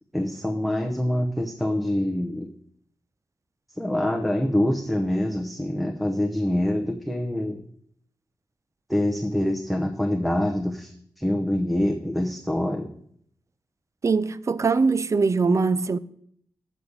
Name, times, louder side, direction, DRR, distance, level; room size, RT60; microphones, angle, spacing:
voice 1, 0.1-2.5 3.7-7.6 8.9-12.9, left 1 dB, ahead, 0.9 m, -25 dB
voice 2, 14.0-16.0, right 4 dB, 40° right, 0.4 m, -22 dB
8.1 x 5.7 x 6.9 m
wide cardioid pair, 85°, 8 cm